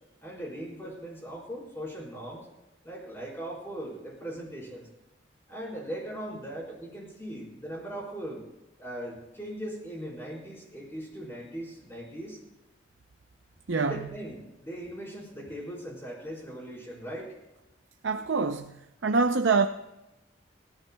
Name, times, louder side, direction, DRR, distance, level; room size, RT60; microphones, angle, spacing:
voice 1, 0.2-2.5 2.8-4.9 5.5-8.4 8.8-12.4 13.7-17.4, right 1 dB, 15° left, 4.7 m, -39 dB
voice 2, 13.7-14.0 18.0-19.7, right 4 dB, 80° right, 0.6 m, -25 dB
28.0 x 14.0 x 2.3 m
head